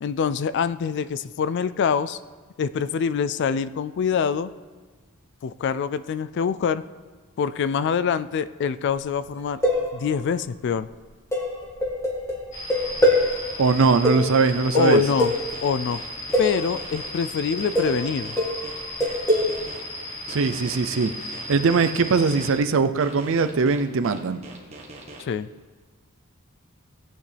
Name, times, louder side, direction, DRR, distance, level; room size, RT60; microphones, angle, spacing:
voice 1, 0.0-2.2 2.6-4.5 5.4-6.8 7.4-9.6 9.9-10.9 14.7-16.0 16.4-18.4 25.2-25.5, left 6 dB, 50° left, 15 dB, 0.3 m, -25 dB
sound 1, 9.3-10.3 11.3-13.3 13.7-13.8 14.0-15.5 16.3-16.7 17.5-18.1 18.4-19.6, left 1 dB, 15° left, 1.9 m, -23 dB
sound 2, 12.5-22.5, left 1 dB, 35° left, 2.1 m, -36 dB
voice 2, 13.6-15.0 20.3-21.1 21.5-24.4, right 4 dB, 60° right, 11 dB, 0.5 m, -21 dB
sound 3, 14.9-17.1 17.6-19.8 20.3-22.5 23.0-25.2, right 2 dB, 30° right, 1.5 m, -42 dB
17.0 x 8.9 x 3.4 m, 1.5 s
head